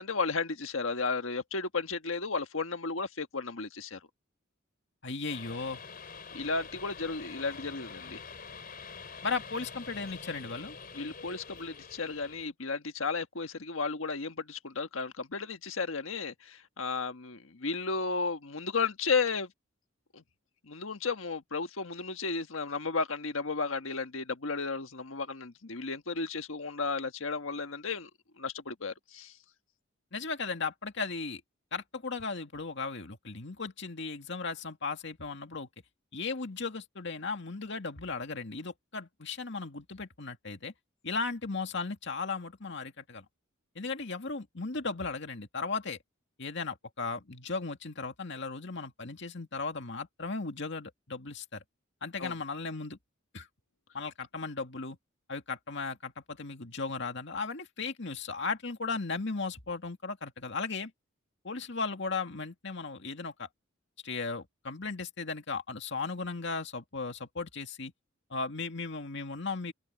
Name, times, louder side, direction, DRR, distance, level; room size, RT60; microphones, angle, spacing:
voice 1, 0.0-4.0 6.3-8.2 10.9-19.5 20.1-20.2 20.6-28.1 28.4-29.4 52.2-52.3, left 4 dB, 80° left, 1.4 m, -33 dB
voice 2, 5.0-5.8 9.2-10.8 30.1-31.4 31.7-35.7 36.1-40.7 41.0-43.3 43.8-46.0 46.4-51.6 52.0-53.0 53.3-53.5 53.9-55.0 55.3-60.9 61.4-63.5 64.0-67.9 68.3-69.7, left 4 dB, 60° left, 2.2 m, -36 dB
sound 1, 5.3-12.5, left 5 dB, 45° left, 4.5 m, -46 dB
head